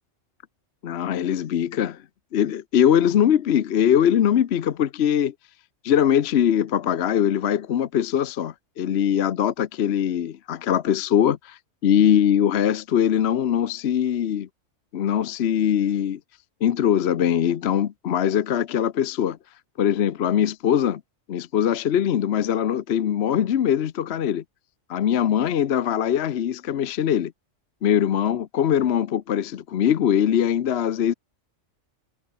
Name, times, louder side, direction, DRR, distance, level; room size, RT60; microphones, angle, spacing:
voice 1, 0.8-2.0 2.3-5.3 5.8-14.5 14.9-16.2 16.6-19.4 19.8-21.0 21.3-24.4 24.9-27.3 27.8-31.1, left 9 dB, 60° left, 1.0 m, -22 dB
omnidirectional pair, 1.3 m